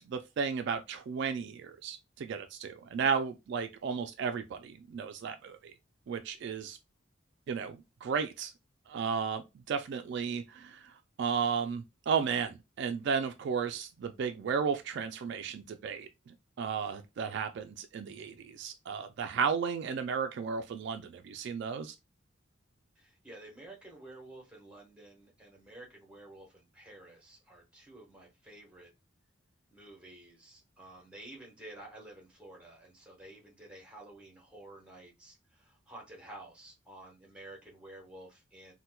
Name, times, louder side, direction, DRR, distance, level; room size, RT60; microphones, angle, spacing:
voice 1, 0.0-5.7 6.1-6.8 7.5-8.5 8.9-10.8 11.2-21.9, right 6 dB, 60° right, 0.3 m, -34 dB
voice 2, 22.9-28.9 29.7-38.7, right 1 dB, 5° right, 1.0 m, -51 dB
4.2 x 2.1 x 2.2 m
head